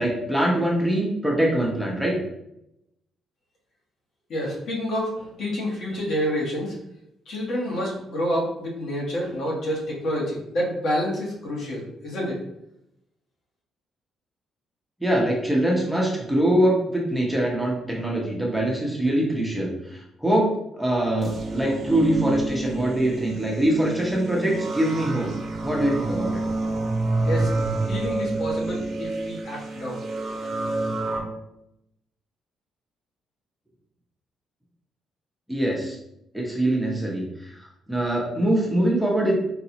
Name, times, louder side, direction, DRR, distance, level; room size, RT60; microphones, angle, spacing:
voice 1, 0.0-2.2 15.0-25.3 25.6-26.4 35.5-36.0 36.3-39.3, right 1 dB, ahead, -3 dB, 0.9 m, -23 dB
voice 2, 4.3-6.8 7.3-12.4 27.2-27.5 27.9-30.0, equal, 65° left, -3 dB, 1.2 m, -28 dB
sound 1, 21.2-31.2, right 2 dB, 55° right, 0.8 m, -28 dB
4.0 x 2.3 x 2.9 m, 0.82 s
cardioid pair, 90°, 0 cm